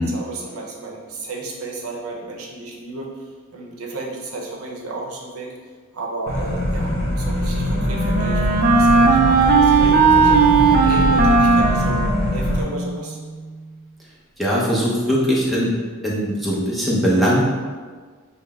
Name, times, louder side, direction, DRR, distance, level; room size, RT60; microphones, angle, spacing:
voice 1, 0.0-5.5 5.9-12.0 12.3-13.2, right 2 dB, 80° right, -1 dB, 0.8 m, -33 dB
sound 1, 6.3-12.6, left 1 dB, 45° left, 1.2 m, -23 dB
Wind instrument woodwind instrument, 7.2-13.0, right 4 dB, 45° right, 0.4 m, -17 dB
voice 2, 14.4-15.7 16.0-17.4, equal, ahead, -7 dB, 0.7 m, -20 dB
6.1 x 2.1 x 3.5 m, 1.5 s
head